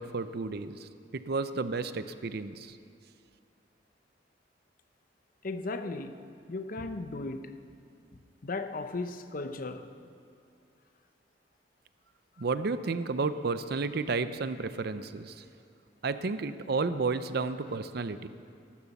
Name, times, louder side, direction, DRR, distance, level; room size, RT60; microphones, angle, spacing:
voice 1, 0.0-2.8 12.4-15.4 16.0-18.3, right 4 dB, 60° right, 0.6 m, -32 dB
voice 2, 5.4-6.2 6.5-7.5 8.4-9.9, left 3 dB, 50° left, 0.8 m, -36 dB
14.0 x 12.0 x 7.1 m
head